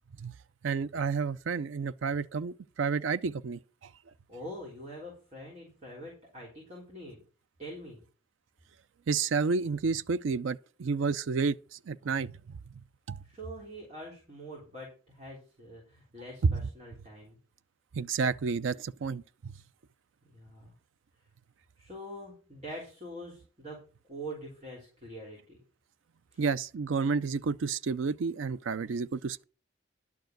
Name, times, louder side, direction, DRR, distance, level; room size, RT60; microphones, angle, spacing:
voice 1, 0.6-3.6 9.1-11.6 11.9-12.3 13.1-13.2 16.5-16.6 17.9-19.2 26.4-29.4, right 5 dB, 85° right, 0.4 m, -30 dB
voice 2, 4.3-7.2 7.6-8.0 13.2-17.4 20.2-20.7 21.8-25.6 26.3-26.4, right 1 dB, 35° right, 3.5 m, -44 dB
11.5 x 4.8 x 7.7 m
head